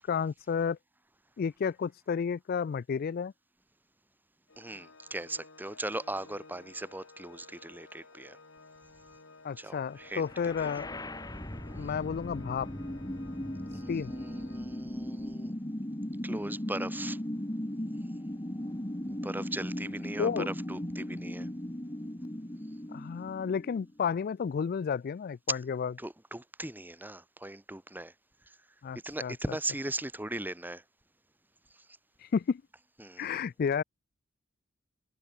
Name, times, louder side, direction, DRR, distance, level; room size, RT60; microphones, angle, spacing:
voice 1, 0.1-0.8 1.4-3.3 9.4-10.9 11.8-12.7 13.9-14.1 20.2-20.5 22.9-25.9 28.8-29.3 32.3-32.6 33.2-33.8, left 6 dB, 45° left, 0.3 m, -31 dB
Organ, 4.5-15.2, left 3 dB, 70° left, 3.2 m, -55 dB
voice 2, 4.6-8.4 9.6-10.8 11.8-11.9 13.7-15.5 16.2-17.2 19.1-21.5 26.0-28.1 29.0-30.8 33.0-33.5, right 1 dB, 10° right, 1.6 m, -39 dB
sound 1, 10.2-24.1, left 1 dB, 20° left, 1.7 m, -38 dB
head